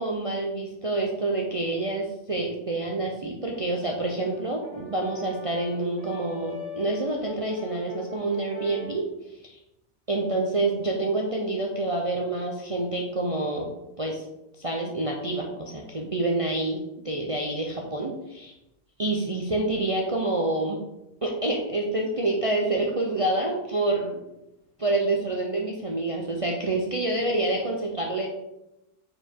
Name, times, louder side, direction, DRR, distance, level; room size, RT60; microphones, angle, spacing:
voice 1, 0.0-9.0 9.5-9.6 10.1-13.7 14.0-14.2 14.6-16.8 17.0-18.5 19.0-20.8 21.2-24.2 24.8-28.3, right 2 dB, 55° right, 0 dB, 0.3 m, -27 dB
Brass instrument, 3.5-9.0, left 5 dB, 40° right, 1.8 m, -41 dB
4.9 x 4.7 x 4.4 m, 0.88 s
omnidirectional pair, 1.7 m